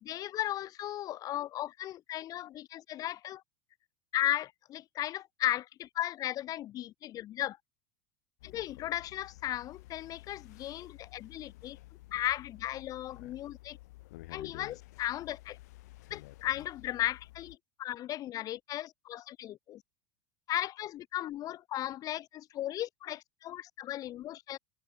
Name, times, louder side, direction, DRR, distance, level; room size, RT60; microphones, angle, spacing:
voice 1, 0.0-3.4 4.1-7.6 8.4-11.8 12.1-13.8 14.3-15.6 16.1-19.8 20.5-24.6, left 13 dB, 35° left, 1.1 m, -36 dB
sound 1, 8.4-17.6, left 19 dB, 60° left, 4.3 m, -52 dB
figure-of-eight pair, 80°, 10 cm